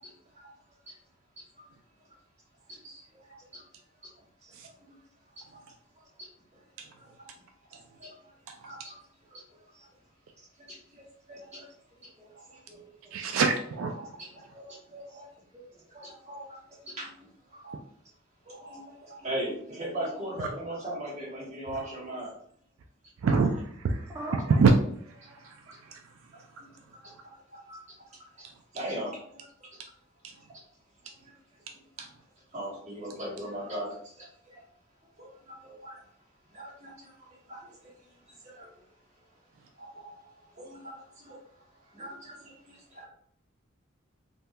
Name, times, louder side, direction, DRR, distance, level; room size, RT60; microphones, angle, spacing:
voice 1, 2.7-3.0 3.5-3.6 4.4-4.5 4.9-5.0 5.4-5.5 6.0-6.1 6.5-6.6 7.0-7.3 7.6-8.9 9.3-9.4 9.7-9.9 10.7-11.7 12.3-12.6 14.0-15.3 15.9-17.1 17.5-17.8 18.4-22.3 25.2-25.3 26.3-26.4 27.0-27.8 28.1-28.4 28.7-29.7 30.3-30.4 31.0-31.3 32.5-34.6 35.2-36.0 36.5-38.7 39.7-43.0, right 1 dB, 35° right, -6 dB, 1.3 m, -40 dB
voice 2, 12.0-12.3 12.7-13.1 15.5-15.8 24.1-24.4 37.6-37.7 42.0-42.2, right 1 dB, 10° right, -5 dB, 0.6 m, -43 dB
voice 3, 13.1-14.1 23.2-24.7 25.1-26.0 30.2-30.3 32.0-32.1, right 5 dB, 80° right, 4 dB, 0.4 m, -27 dB
3.4 x 2.7 x 2.2 m, 0.64 s
head